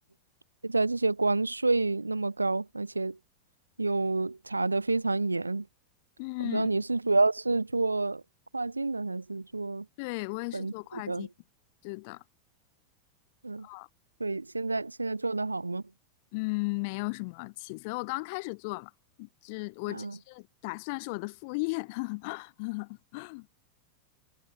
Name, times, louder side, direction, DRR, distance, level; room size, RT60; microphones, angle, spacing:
voice 1, 0.6-3.2 3.8-5.7 6.4-8.2 8.5-9.9 10.5-11.3 13.4-13.7 14.2-15.8 19.9-20.2, right 3 dB, 80° right, 0.4 m, -29 dB
voice 2, 6.2-6.7 10.0-11.3 11.8-12.2 13.6-13.9 16.3-18.9 19.2-23.5, left 29 dB, 45° left, 1.5 m, -35 dB
figure-of-eight pair, 90°, 0 cm